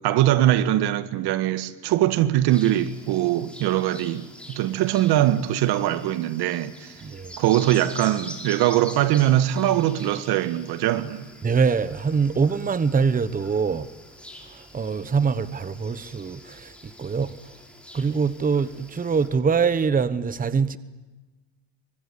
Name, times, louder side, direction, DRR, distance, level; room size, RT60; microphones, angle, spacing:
voice 1, 0.0-4.3 4.6-7.0 7.4-11.3, right 13 dB, 70° right, 1.7 m, -22 dB
sound 1, 2.5-19.3, left 1 dB, 5° left, 6.0 m, -45 dB
voice 2, 7.0-7.3 11.4-13.9 14.5-17.3 17.9-20.8, right 5 dB, 20° right, 1.1 m, -24 dB
25.0 x 24.0 x 9.9 m
supercardioid pair, 105°, 40 cm